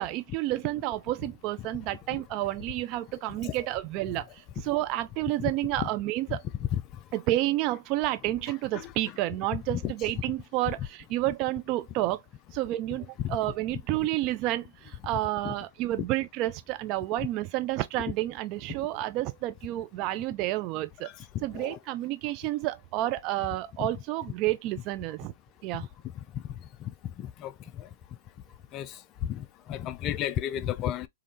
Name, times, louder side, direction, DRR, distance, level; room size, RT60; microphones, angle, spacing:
voice 1, 0.0-6.4 7.1-12.2 12.5-21.1 21.4-25.3 25.6-25.9, right 16 dB, 40° right, 0.4 m, -30 dB
voice 2, 27.2-27.9 28.7-28.9 29.2-31.1, left 11 dB, 35° left, 0.4 m, -32 dB
3.5 x 2.3 x 2.7 m
hypercardioid pair, 130°, 0 cm